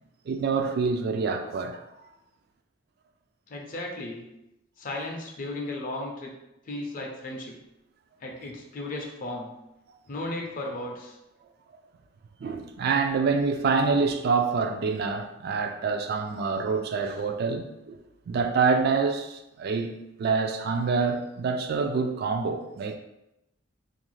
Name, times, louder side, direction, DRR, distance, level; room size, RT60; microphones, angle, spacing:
voice 1, 0.3-1.8 12.4-18.0 18.3-23.0, right 4 dB, 55° right, 0.3 m, -26 dB
voice 2, 3.5-4.3 4.8-6.3 6.7-7.5 8.2-9.5 10.1-11.2, left 2 dB, 45° left, 0.5 m, -35 dB
2.4 x 2.3 x 3.1 m
head